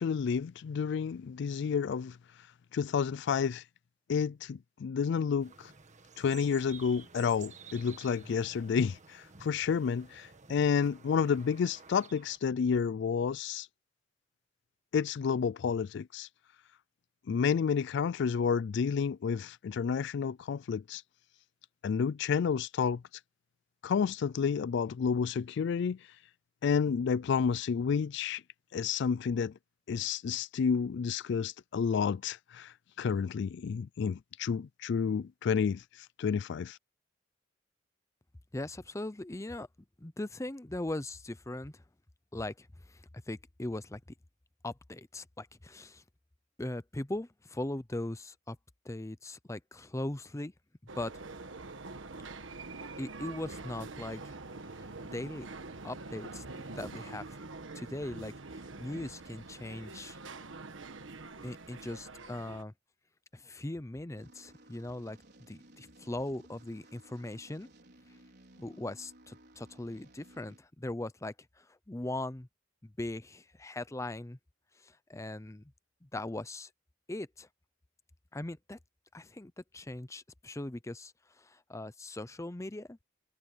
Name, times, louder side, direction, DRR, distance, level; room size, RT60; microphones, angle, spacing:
voice 1, 0.0-2.2 2.7-3.6 4.1-5.7 6.2-13.7 14.9-16.3 17.3-21.0 21.8-23.0 23.8-26.0 26.6-28.4 28.7-29.5 29.9-36.8, left 6 dB, 65° left, 0.4 m, -30 dB
sound 1, 5.4-12.4, right 5 dB, 40° right, 1.7 m, -53 dB
voice 2, 38.5-39.7 40.0-41.8 42.3-44.0 44.6-46.0 46.6-48.6 48.8-50.5 51.0-51.1 53.0-54.4 54.7-55.5 55.8-57.4 57.7-60.2 61.4-62.7 63.3-65.2 65.5-67.7 68.6-72.5 72.8-74.4 74.8-75.6 76.0-76.7 77.1-77.5 78.3-78.8 79.1-83.0, left 1 dB, 15° left, 0.7 m, -40 dB
sound 2, 50.9-62.6, right 3 dB, 85° right, 1.5 m, -45 dB
sound 3, 64.2-70.6, right 1 dB, 60° right, 5.1 m, -58 dB
head